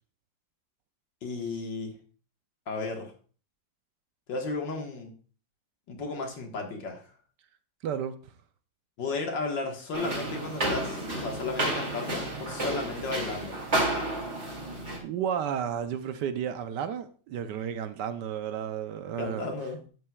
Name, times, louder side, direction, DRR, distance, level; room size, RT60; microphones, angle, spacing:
voice 1, 1.2-1.9 2.7-3.1 4.3-5.1 5.9-7.0 9.0-13.6 19.2-19.8, left 3 dB, 70° left, 2.2 m, -34 dB
voice 2, 7.8-8.3 15.0-19.5, right 8 dB, 70° right, 1.2 m, -32 dB
sound 1, 9.9-15.0, right 1 dB, 35° right, 2.6 m, -31 dB
11.0 x 8.7 x 2.3 m
omnidirectional pair, 2.1 m